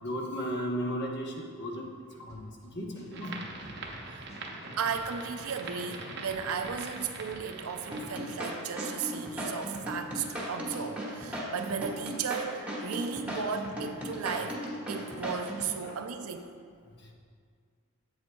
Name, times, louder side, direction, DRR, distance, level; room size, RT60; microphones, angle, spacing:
voice 1, 0.0-1.9 2.2-3.4 13.3-13.4 15.8-16.0 17.0-17.1, equal, 50° left, 0 dB, 0.9 m, -35 dB
sound 1, 2.3-2.7 3.0-5.3 5.6-7.4, right 1 dB, 15° left, 1.0 m, -52 dB
sound 2, 3.1-8.4, right 3 dB, 55° right, 0.7 m, -43 dB
voice 2, 4.8-14.6 14.9-16.4, right 6 dB, 85° right, 7 dB, 0.5 m, -35 dB
sound 3, 7.9-15.7, equal, 5° right, 1.1 m, -36 dB
8.1 x 7.8 x 2.3 m, 2.1 s
head